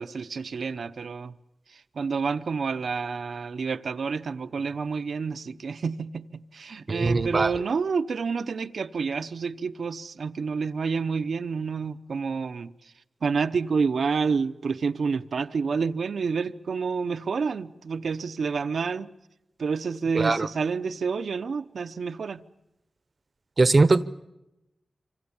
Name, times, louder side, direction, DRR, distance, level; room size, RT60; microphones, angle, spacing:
voice 1, 0.0-1.3 1.7-12.7 13.2-19.1 19.6-22.4, right 5 dB, 75° right, 0.8 m, -29 dB
voice 2, 6.9-7.5 20.1-20.5 23.6-24.0, right 3 dB, 40° right, 0.9 m, -20 dB
26.5 x 26.0 x 7.2 m
wide cardioid pair, 110°, 0 cm